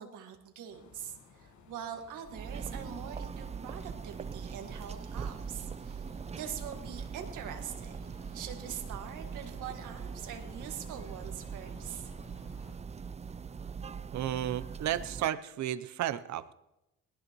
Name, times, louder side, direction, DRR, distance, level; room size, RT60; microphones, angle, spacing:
voice 1, 0.0-6.1 6.3-12.1, right 8 dB, 85° right, 5 dB, 1.8 m, -44 dB
sound 1, 0.7-12.8, left 5 dB, 70° left, 1.6 m, -58 dB
sound 2, 2.3-15.3, right 6 dB, 20° right, 0.4 m, -41 dB
voice 2, 14.1-16.5, right 11 dB, 65° right, 14 dB, 0.7 m, -33 dB
19.5 x 17.5 x 3.1 m, 0.95 s
cardioid pair, 90°, 30 cm